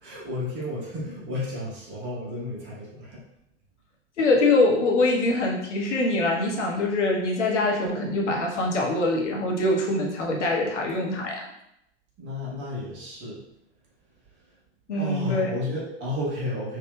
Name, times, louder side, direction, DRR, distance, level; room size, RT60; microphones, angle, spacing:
voice 1, 0.0-3.2 12.2-13.4 15.0-16.8, left 1 dB, 30° right, -6 dB, 1.3 m, -32 dB
voice 2, 4.2-11.4 14.9-15.5, left 2 dB, 75° left, -1 dB, 0.9 m, -24 dB
4.5 x 2.3 x 2.2 m, 0.79 s
figure-of-eight pair, 90°, 36 cm